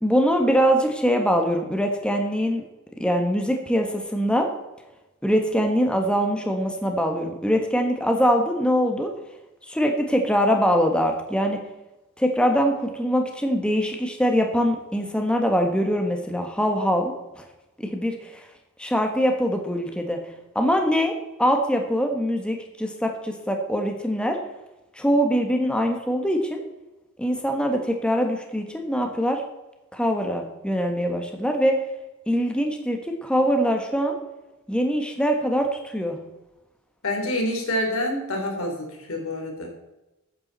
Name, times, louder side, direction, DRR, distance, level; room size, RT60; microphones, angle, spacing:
voice 1, 0.0-2.6 3.0-4.5 5.2-9.1 9.7-11.6 12.2-17.4 17.8-18.4 18.8-20.2 20.5-21.1 21.4-24.4 24.9-26.6 27.2-29.4 29.9-31.8 32.3-34.2 34.7-36.2, equal, 5° left, 3 dB, 1.3 m, -23 dB
voice 2, 37.0-39.7, left 1 dB, 75° left, 2 dB, 3.3 m, -27 dB
13.5 x 9.5 x 4.0 m, 1.0 s
head